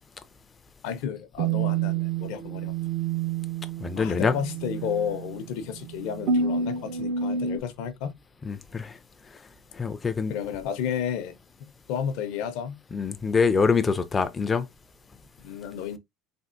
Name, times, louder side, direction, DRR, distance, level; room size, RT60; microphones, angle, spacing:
voice 1, 0.8-2.7 4.0-8.1 10.3-11.3 11.9-12.8 15.4-16.0, left 8 dB, 75° left, 0.6 m, -32 dB
sound 1, 1.4-7.6, right 6 dB, 60° right, 0.4 m, -29 dB
voice 2, 3.8-4.3 8.4-8.9 9.8-10.3 12.9-14.7, left 5 dB, 20° left, 0.3 m, -24 dB
3.4 x 2.4 x 2.5 m
cardioid pair, 145°, 0 cm